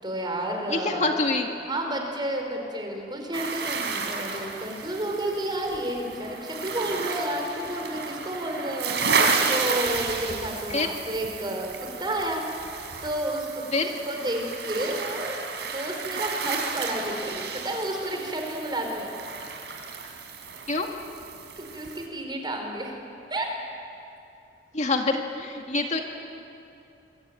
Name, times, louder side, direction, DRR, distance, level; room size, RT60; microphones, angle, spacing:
voice 1, 0.0-1.1 1.7-12.4 13.0-15.4 15.7-19.1 21.6-23.0 23.3-23.5, right 1 dB, 25° right, 2 dB, 4.7 m, -31 dB
voice 2, 0.7-1.5 10.7-10.9 13.7-13.9 20.7-20.9 24.7-26.0, left 3 dB, 40° left, 3 dB, 1.9 m, -26 dB
sound 1, 3.3-22.1, right 4 dB, 80° right, 3.6 m, -32 dB
25.5 x 23.5 x 9.0 m, 2.7 s
head